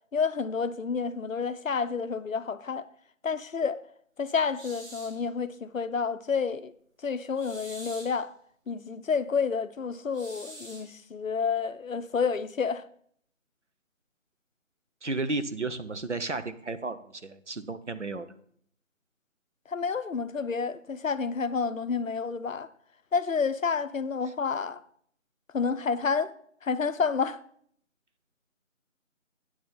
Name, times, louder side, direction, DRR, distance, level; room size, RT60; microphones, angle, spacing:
voice 1, 0.1-2.9 3.2-3.8 4.2-6.7 7.0-8.3 8.7-12.8 19.7-22.7 23.1-24.8 25.5-26.3 26.6-27.4, left 5 dB, 75° left, 0.7 m, -29 dB
sound 1, 4.5-5.2 7.3-8.2 10.1-10.9, right 1 dB, 80° right, 2.8 m, -46 dB
voice 2, 15.0-18.3, right 3 dB, 60° right, 0.8 m, -33 dB
9.4 x 7.0 x 4.2 m
figure-of-eight pair, 180°, 40 cm